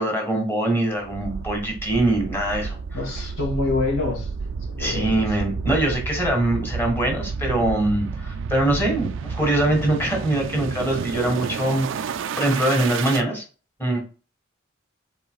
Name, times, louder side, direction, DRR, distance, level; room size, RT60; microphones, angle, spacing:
voice 1, 0.0-3.0 4.8-13.4 13.8-14.0, right 1 dB, 10° left, 1.7 m, -23 dB
sound 1, 1.0-13.2, right 5 dB, 65° right, 0.4 m, -31 dB
voice 2, 2.9-4.3 4.7-5.3, left 3 dB, 85° left, 2.3 m, -26 dB
5.5 x 4.1 x 2.3 m
head